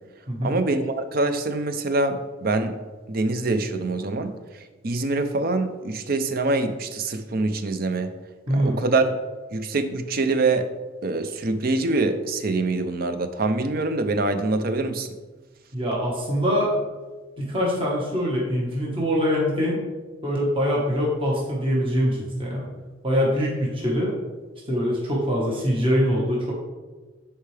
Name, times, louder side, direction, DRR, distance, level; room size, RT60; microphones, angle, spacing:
voice 1, 0.4-2.7 3.1-4.3 4.8-8.1 8.5-9.1 9.5-10.7 11.0-15.1, right 3 dB, 50° right, 9 dB, 0.6 m, -24 dB
voice 2, 8.5-8.8 15.7-16.7 17.4-19.8 20.2-22.7 23.0-24.1 24.7-26.5, equal, 30° right, -4 dB, 1.5 m, -23 dB
10.0 x 4.6 x 3.4 m, 1.3 s
head